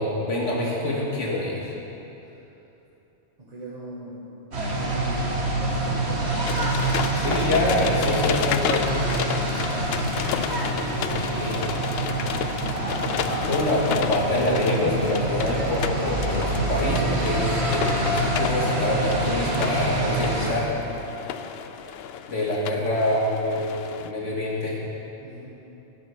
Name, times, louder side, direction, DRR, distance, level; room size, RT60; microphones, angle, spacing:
voice 1, 0.0-1.7 7.2-8.9 11.2-11.6 13.5-20.7 22.3-24.8, left 1 dB, 90° left, -4 dB, 2.6 m, -26 dB
voice 2, 3.4-4.4 4.8-6.8 9.9-10.3 11.3-12.7 25.2-25.6, right 1 dB, 35° right, -8 dB, 1.7 m, -41 dB
sound 1, 4.5-20.5, right 1 dB, 65° right, 1.9 m, -26 dB
sound 2, 6.5-24.1, left 8 dB, 65° left, 0.7 m, -32 dB
13.5 x 9.0 x 6.1 m, 3.0 s
omnidirectional pair, 1.2 m